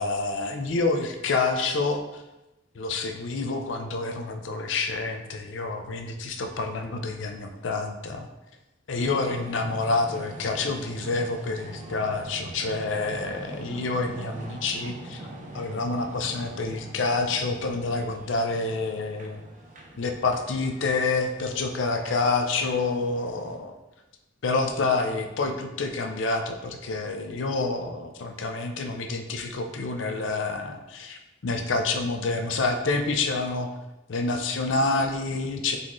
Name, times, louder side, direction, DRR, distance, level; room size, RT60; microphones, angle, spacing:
voice 1, 0.0-2.2 2.7-8.3 8.9-15.2 15.5-19.4 20.0-23.7 24.4-33.7 34.1-35.8, left 3 dB, 90° left, 5 dB, 0.5 m, -28 dB
sound 1, 8.9-23.6, right 1 dB, 40° right, 0.6 m, -43 dB
4.1 x 3.7 x 3.0 m, 1.0 s
head